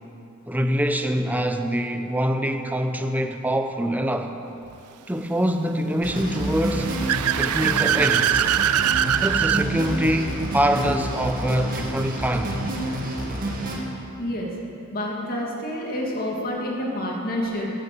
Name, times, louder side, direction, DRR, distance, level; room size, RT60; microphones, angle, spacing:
voice 1, 0.5-4.3 5.1-7.0 7.4-8.5 9.2-12.6, equal, 5° right, 6 dB, 0.8 m, -24 dB
sound 1, 6.0-13.8, right 1 dB, 40° right, 2.1 m, -29 dB
Car / Accelerating revving vroom, 6.4-9.7, right 10 dB, 90° right, 0.4 m, -22 dB
voice 2, 14.2-14.5 14.9-17.7, left 1 dB, 40° left, -2 dB, 2.7 m, -28 dB
14.0 x 13.0 x 6.9 m, 2.7 s
head